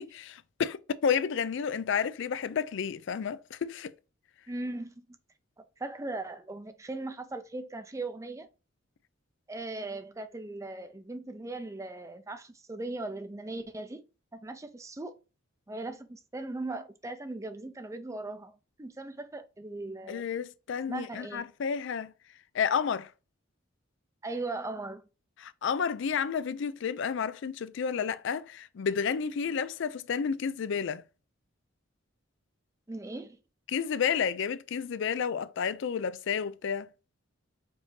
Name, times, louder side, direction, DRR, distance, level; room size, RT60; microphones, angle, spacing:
voice 1, 0.0-3.9 20.1-22.1 22.5-23.1 25.4-31.0 33.7-36.9, left 6 dB, 60° left, 0.4 m, -31 dB
voice 2, 4.5-5.1 5.8-8.5 9.5-14.0 14.3-15.1 15.7-20.2 20.9-21.5 24.2-25.0 32.9-33.4, right 2 dB, 15° right, 0.5 m, -38 dB
5.1 x 2.7 x 3.2 m
head